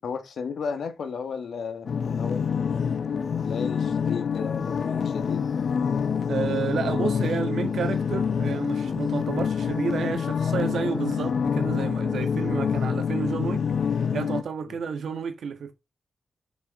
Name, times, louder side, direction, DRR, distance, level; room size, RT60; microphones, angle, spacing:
voice 1, 0.0-3.0 3.4-5.6 7.0-7.2 14.7-14.8, left 5 dB, 80° left, 1.4 m, -34 dB
sound 1, 1.9-14.4, left 6 dB, 60° left, 0.7 m, -26 dB
voice 2, 6.3-13.6 13.9-15.7, right 6 dB, 85° right, 1.5 m, -31 dB
6.1 x 6.1 x 4.2 m
wide cardioid pair, 110°, 0 cm